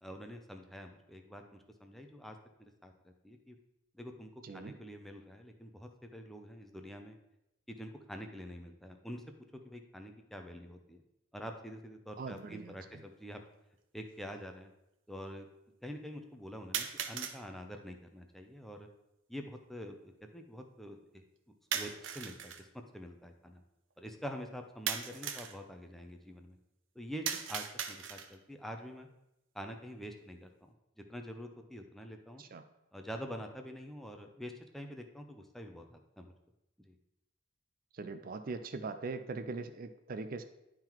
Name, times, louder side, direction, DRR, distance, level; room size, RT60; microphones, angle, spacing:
voice 1, 0.0-3.6 3.9-7.2 7.7-9.2 9.5-11.0 11.3-13.4 13.9-14.7 15.1-15.5 15.8-18.9 19.3-21.2 21.7-22.7 22.9-23.6 24.0-26.6 26.9-29.1 29.5-32.4 32.9-36.3 36.8-37.0, equal, ahead, 4 dB, 0.6 m, -46 dB
voice 2, 12.2-12.7 32.4-32.6 37.9-40.4, right 3 dB, 45° right, 9 dB, 0.4 m, -41 dB
sound 1, 12.4-12.5 13.5-13.6 16.7-17.4 21.7-22.6 24.9-25.6 27.3-28.4, right 8 dB, 75° right, 0.7 m, -38 dB
10.5 x 3.8 x 4.5 m, 0.89 s
head